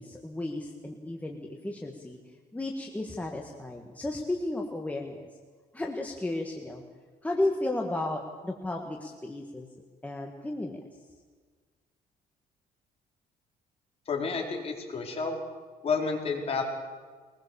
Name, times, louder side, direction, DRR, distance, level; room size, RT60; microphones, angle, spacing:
voice 1, 0.0-2.2 2.5-5.3 5.7-6.8 7.2-9.7 10.0-10.8, left 2 dB, 10° left, 1 dB, 1.8 m, -33 dB
voice 2, 14.1-15.4 15.8-16.6, left 4 dB, 40° left, 1 dB, 4.5 m, -30 dB
22.0 x 20.5 x 7.1 m, 1.5 s
cardioid pair, 135°, 16 cm